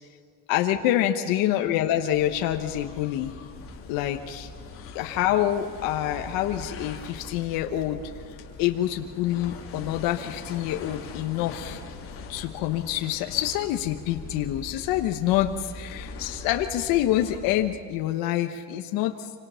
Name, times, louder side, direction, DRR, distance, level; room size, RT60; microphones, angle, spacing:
voice 1, 0.5-3.3 3.9-4.5 4.9-11.8 12.3-19.3, left 12 dB, 70° left, 4 dB, 1.3 m, -26 dB
sound 1, 2.0-17.9, left 4 dB, 35° left, 3.3 m, -42 dB
27.0 x 25.5 x 5.8 m, 2.2 s
cardioid pair, 155°, 36 cm